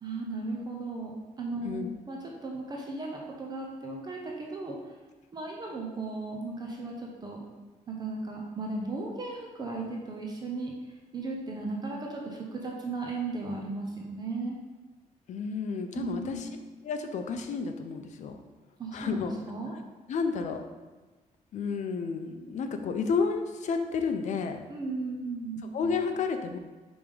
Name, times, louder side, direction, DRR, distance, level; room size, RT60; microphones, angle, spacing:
voice 1, 0.0-4.9 5.3-7.4 7.9-14.6 15.9-16.4 18.8-19.7 24.7-25.6, right 3 dB, 30° right, -1 dB, 0.7 m, -36 dB
voice 2, 15.3-16.5 16.8-18.4 18.9-19.3 20.1-20.6 21.5-24.6 25.7-26.6, left 5 dB, 55° left, 6 dB, 0.6 m, -31 dB
5.1 x 3.5 x 5.3 m, 1.2 s
wide cardioid pair, 170°, 14 cm